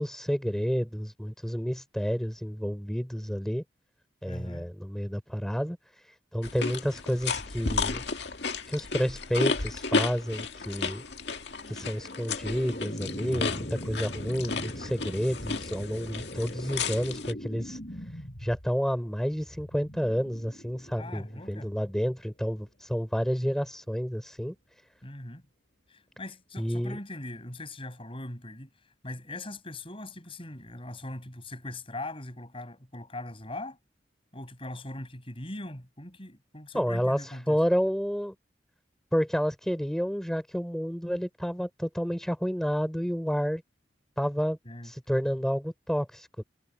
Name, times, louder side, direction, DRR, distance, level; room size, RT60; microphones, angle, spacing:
voice 1, 0.0-3.6 4.2-5.8 6.3-8.0 8.7-11.0 11.7-17.8 18.4-24.5 26.6-27.0 36.7-38.3 39.1-43.6 44.2-44.6 44.8-46.4, equal, 5° left, 4.9 m, -30 dB
voice 2, 4.3-4.7 21.0-21.7 25.0-25.4 25.9-28.7 29.0-33.8 34.3-37.6 44.6-44.9, left 1 dB, 30° left, 7.9 m, -40 dB
sound 1, 6.4-17.3, left 4 dB, 75° left, 1.9 m, -33 dB
sound 2, 11.6-22.8, equal, 50° left, 6.0 m, -42 dB
head